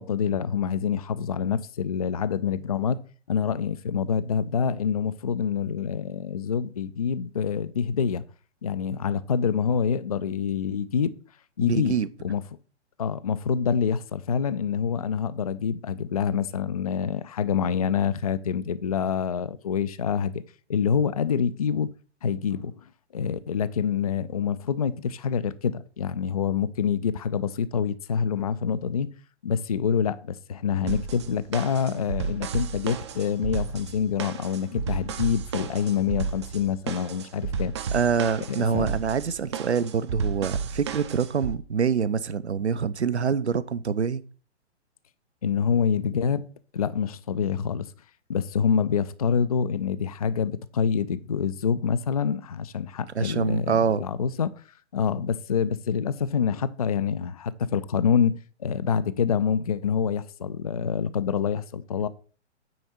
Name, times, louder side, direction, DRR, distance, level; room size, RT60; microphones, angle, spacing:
voice 1, 0.0-3.0 3.3-8.2 8.6-11.1 11.6-12.0 12.2-12.4 13.0-20.4 20.7-21.9 22.2-22.8 23.1-29.1 29.4-37.7 38.5-38.9 45.4-46.4 46.7-47.9 48.3-54.6 54.9-62.1, left 7 dB, 35° left, 0.4 m, -26 dB
voice 2, 11.6-12.1 37.9-44.2 53.1-54.0, right 6 dB, 70° right, 0.7 m, -25 dB
sound 1, 30.9-41.5, right 6 dB, 25° right, 0.5 m, -32 dB
9.3 x 4.2 x 5.8 m
figure-of-eight pair, 125°, 36 cm